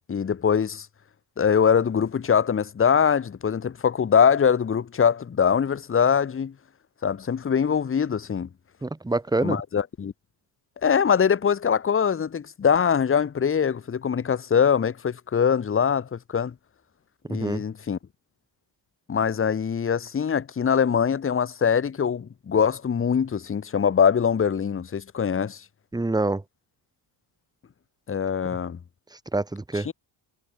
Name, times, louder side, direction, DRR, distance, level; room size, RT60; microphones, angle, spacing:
voice 1, 0.1-0.9 1.4-6.5 7.0-8.5 9.4-10.1 10.8-16.5 17.3-18.0 19.1-25.6 28.1-28.8 29.8-29.9, left 7 dB, 30° left, 1.2 m, -23 dB
voice 2, 8.8-9.6 17.3-17.6 25.9-26.4 29.3-29.9, right 2 dB, 10° right, 1.3 m, -26 dB
cardioid pair, 125°, 46 cm